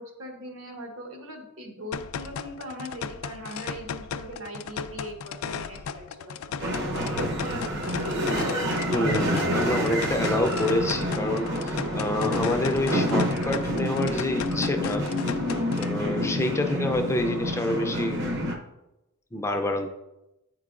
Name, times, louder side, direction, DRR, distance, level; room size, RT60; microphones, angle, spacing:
voice 1, 0.0-6.5 7.1-8.6, equal, 80° right, 1 dB, 1.2 m, -40 dB
sound 1, 1.9-15.9, left 6 dB, 85° left, 0.3 m, -36 dB
sound 2, 6.6-18.6, equal, 55° right, 0.8 m, -28 dB
voice 2, 8.9-15.1 15.8-18.3 19.3-19.9, left 1 dB, 15° left, 4 dB, 0.4 m, -27 dB
8.6 x 4.6 x 2.4 m, 0.93 s
head